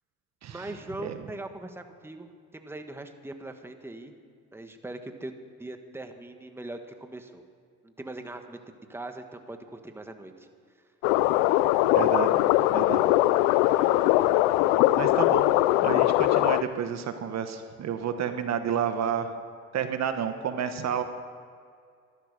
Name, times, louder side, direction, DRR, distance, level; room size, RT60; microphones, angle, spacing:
voice 1, 0.5-4.2 4.5-5.3 5.6-7.4 7.8-10.5, right 2 dB, 5° right, 6 dB, 1.3 m, -41 dB
sound 1, 11.0-16.6, left 16 dB, 90° left, 0.5 m, -21 dB
voice 2, 11.9-12.4 12.7-13.1 13.6-14.1 15.0-15.5 15.8-19.3 19.7-21.0, right 8 dB, 50° right, 9 dB, 1.2 m, -30 dB
13.0 x 12.5 x 6.6 m, 2.2 s
supercardioid pair, 80°, 33 cm